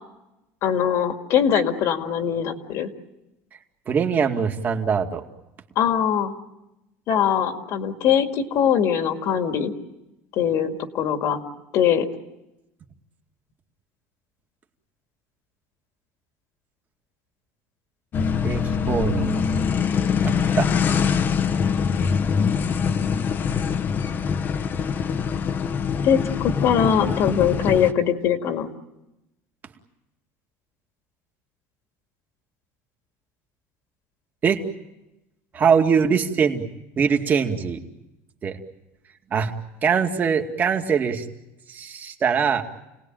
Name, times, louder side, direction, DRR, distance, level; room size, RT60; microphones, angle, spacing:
voice 1, 0.6-2.9 5.8-6.3 7.1-9.7 10.3-11.4 11.7-12.1 26.0-28.7, left 8 dB, 55° left, 6 dB, 2.2 m, -22 dB
voice 2, 3.9-5.2 18.4-19.5 20.2-20.7 34.4-34.6 35.5-36.6 37.0-37.8 38.4-38.6 39.3-39.5 39.8-41.2 41.7-42.6, right 6 dB, 30° right, 4 dB, 2.3 m, -22 dB
sound 1, 18.1-27.9, left 6 dB, 30° left, 1.1 m, -23 dB
29.5 x 19.0 x 9.2 m, 0.94 s
cardioid pair, 150°, 6 cm